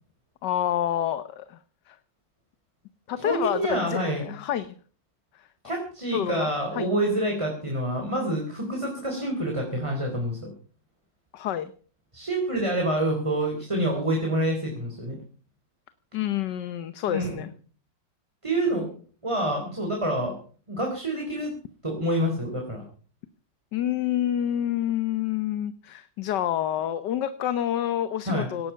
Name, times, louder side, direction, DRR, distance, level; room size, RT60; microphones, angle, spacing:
voice 1, 0.4-1.6 1.9-2.0 3.1-4.8 5.3-5.5 6.1-6.9 11.3-11.7 16.1-17.5 23.7-28.7, left 11 dB, 70° left, 12 dB, 1.5 m, -28 dB
voice 2, 3.2-4.4 5.6-10.5 12.1-15.2 17.1-17.4 18.4-19.0 19.2-20.4 20.7-21.5 21.8-22.8 28.3-28.5, right 1 dB, 15° right, 1 dB, 3.6 m, -27 dB
18.0 x 12.0 x 5.6 m, 0.43 s
omnidirectional pair, 2.0 m